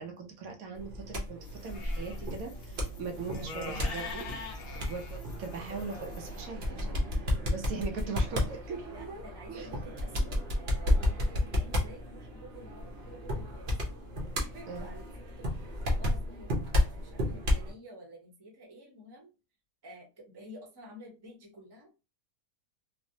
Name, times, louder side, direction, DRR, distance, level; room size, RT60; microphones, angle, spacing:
voice 1, 0.0-9.2 9.5-9.7 14.7-14.9, right 4 dB, 75° right, 3 dB, 1.1 m, -40 dB
sound 1, 0.7-17.7, left 1 dB, 50° right, 0.9 m, -32 dB
sound 2, 1.4-6.5, left 2 dB, 55° left, 0.7 m, -43 dB
voice 2, 8.9-13.9 14.4-15.5 15.8-16.6 16.9-19.3 19.8-21.9, equal, 20° right, -1 dB, 0.7 m, -51 dB
3.1 x 2.0 x 2.6 m, 0.29 s
omnidirectional pair, 1.5 m